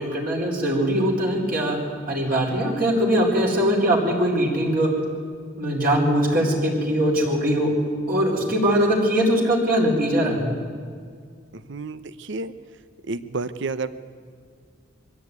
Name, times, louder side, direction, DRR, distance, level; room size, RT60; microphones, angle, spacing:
voice 1, 0.0-1.8 2.1-4.9 5.6-7.7 8.1-10.4, equal, 50° right, -3 dB, 4.5 m, -21 dB
voice 2, 11.7-12.5 13.1-13.9, right 3 dB, 65° right, 14 dB, 0.8 m, -30 dB
23.0 x 15.5 x 9.6 m, 2.1 s
head